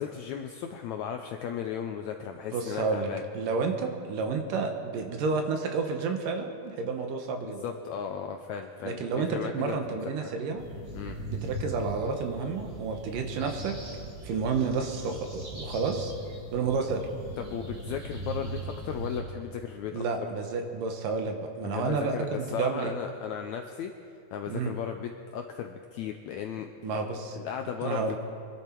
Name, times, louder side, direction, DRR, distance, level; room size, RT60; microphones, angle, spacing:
voice 1, 0.0-3.2 7.4-10.3 10.9-11.2 17.4-20.0 21.6-23.9 24.3-26.7 27.3-28.1, left 8 dB, 90° left, 5 dB, 1.6 m, -36 dB
voice 2, 2.5-7.6 8.8-10.6 11.3-13.8 14.2-16.1 16.5-17.0 19.9-22.9 24.5-24.7 26.8-27.4 27.8-28.2, right 4 dB, 75° right, 4 dB, 2.7 m, -30 dB
sound 1, 10.6-19.2, right 1 dB, 30° right, 2.8 m, -39 dB
24.5 x 11.5 x 4.5 m, 2.5 s
omnidirectional pair, 4.0 m